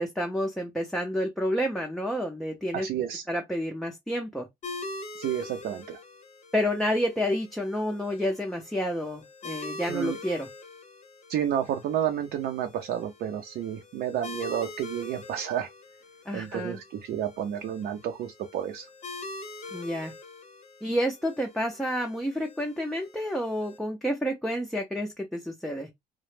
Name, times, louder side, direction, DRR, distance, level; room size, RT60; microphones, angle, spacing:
voice 1, 0.0-2.9 3.3-4.5 6.5-10.5 16.3-16.8 19.7-20.1 20.8-25.9, equal, ahead, 0.4 m, -29 dB
voice 2, 2.7-3.2 5.2-6.0 9.9-10.2 11.3-15.7 16.3-18.9, right 10 dB, 65° right, 0.4 m, -30 dB
sound 1, 4.6-23.8, left 3 dB, 45° left, 0.7 m, -44 dB
2.0 x 2.0 x 3.0 m
cardioid pair, 110°, 17 cm